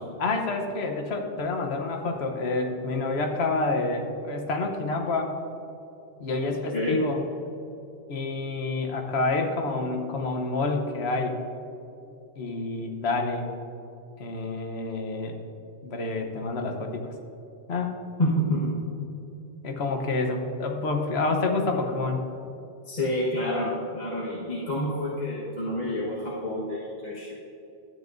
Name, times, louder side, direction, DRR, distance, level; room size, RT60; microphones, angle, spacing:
voice 1, 0.2-5.3 6.2-7.2 8.1-11.4 12.4-13.5 14.2-15.4 15.8-17.1 17.7-18.0 19.6-22.2, left 3 dB, 70° left, 3 dB, 1.2 m, -28 dB
voice 2, 18.2-18.8 22.8-27.3, equal, 40° left, -7 dB, 1.4 m, -28 dB
12.5 x 9.1 x 2.6 m, 2.8 s
omnidirectional pair, 1.1 m